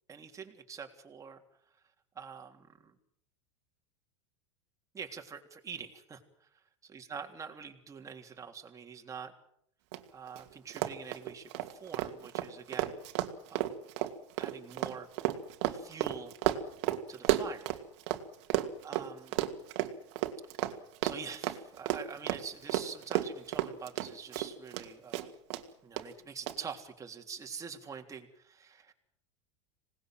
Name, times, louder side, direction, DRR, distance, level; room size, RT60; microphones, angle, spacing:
voice 1, 0.1-1.4 2.1-2.9 4.9-6.5 6.8-9.3 10.1-13.0 13.5-13.7 14.4-15.1 15.6-16.3 17.1-17.7 18.8-19.5 21.0-25.3 25.8-28.9, right 6 dB, 20° right, 3 dB, 3.5 m, -45 dB
Run, 9.9-10.0 10.3-10.4 10.7-18.2 18.5-24.9 25.1-25.6 26.0-26.1 26.5-26.6, right 15 dB, 65° right, 2.5 m, -32 dB
26.0 x 19.5 x 7.7 m, 0.72 s
supercardioid pair, 120°, 16 cm